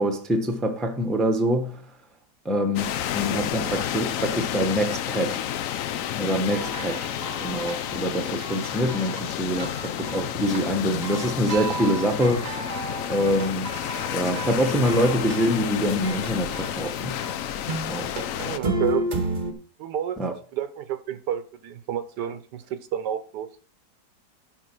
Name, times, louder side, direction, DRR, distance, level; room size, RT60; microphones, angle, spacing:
voice 1, 0.0-1.8 2.4-5.4 6.2-7.1 7.4-12.4 13.1-13.7 14.1-17.2 17.9-18.2 20.2-20.3, equal, ahead, 0.8 m, -25 dB
sound 1, 2.8-18.6, left 10 dB, 65° left, 0.8 m, -31 dB
sound 2, 6.5-9.3 9.6-10.7 11.0-16.8 17.2-19.5, right 2 dB, 30° right, 0.9 m, -33 dB
voice 2, 18.4-19.1 19.8-20.2 20.5-23.5, right 10 dB, 75° right, 1.4 m, -30 dB
11.0 x 4.4 x 6.0 m
omnidirectional pair, 1.8 m